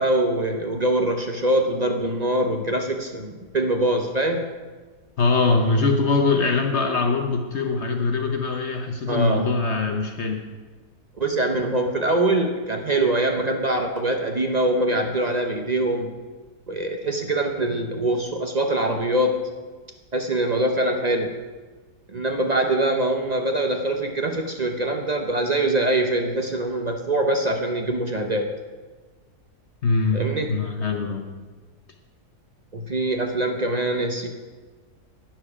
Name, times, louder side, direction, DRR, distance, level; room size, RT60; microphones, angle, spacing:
voice 1, 0.0-4.5 9.1-9.5 11.2-16.1 16.7-19.5 20.1-21.3 22.1-28.5 30.1-30.5 32.7-34.3, right 1 dB, 40° right, 4 dB, 0.6 m, -23 dB
voice 2, 5.2-10.4 29.8-31.3, left 3 dB, 50° left, 4 dB, 1.0 m, -22 dB
11.5 x 9.1 x 4.9 m, 1.4 s
omnidirectional pair, 1.7 m